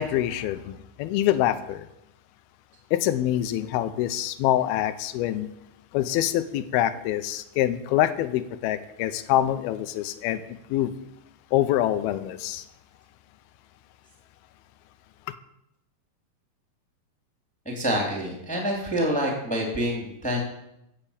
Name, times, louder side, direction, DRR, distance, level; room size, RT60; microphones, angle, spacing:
voice 1, 0.0-1.9 2.9-5.5 5.9-10.9 11.5-12.6, left 12 dB, 85° left, 2.7 m, -25 dB
voice 2, 17.6-20.4, equal, ahead, 2.4 m, -27 dB
15.5 x 6.8 x 8.6 m
omnidirectional pair, 4.3 m